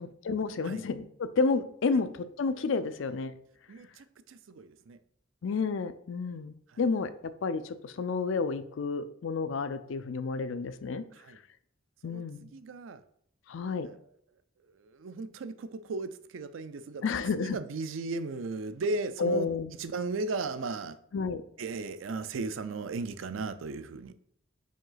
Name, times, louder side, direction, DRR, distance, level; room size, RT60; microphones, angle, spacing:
voice 1, 0.0-3.3 5.4-11.0 12.0-12.5 13.5-13.9 17.0-17.6 19.2-19.7 21.1-21.4, left 4 dB, 75° left, 0.4 m, -31 dB
voice 2, 3.7-5.0 6.7-6.8 11.2-11.4 12.0-13.0 13.8-13.9 14.8-17.0 17.3-19.5 19.8-21.0 21.6-24.1, right 3 dB, 80° right, 0.4 m, -36 dB
5.2 x 4.7 x 3.9 m
head